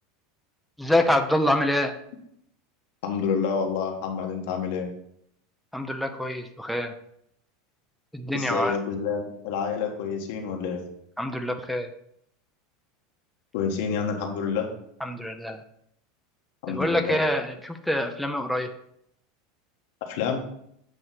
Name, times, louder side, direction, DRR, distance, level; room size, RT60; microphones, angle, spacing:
voice 1, 0.8-1.9 5.7-6.9 8.1-8.8 11.2-11.9 15.0-15.6 16.7-18.7, left 1 dB, ahead, 4 dB, 0.6 m, -26 dB
voice 2, 3.0-4.9 8.3-10.8 13.5-14.7 16.6-17.2 20.0-20.4, left 6 dB, 70° left, 2 dB, 1.4 m, -28 dB
7.9 x 3.1 x 5.8 m, 0.72 s
supercardioid pair, 125°, 0 cm